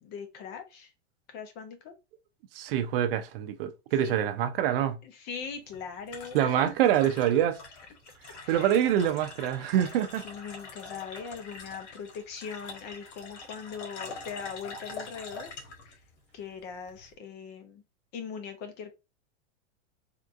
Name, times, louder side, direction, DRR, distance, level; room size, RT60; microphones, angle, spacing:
voice 1, 0.0-0.9 1.3-1.9 4.0-4.3 5.0-7.3 8.4-8.8 10.2-15.5 15.9-16.0 16.3-17.8 18.1-18.9, left 6 dB, 30° left, 0.5 m, -41 dB
voice 2, 2.5-5.0 6.3-7.6 8.5-10.2, right 10 dB, 55° right, 0.6 m, -25 dB
sound 1, 5.4-17.1, left 4 dB, 85° left, 1.3 m, -45 dB
3.6 x 2.5 x 2.4 m
supercardioid pair, 135°, 35 cm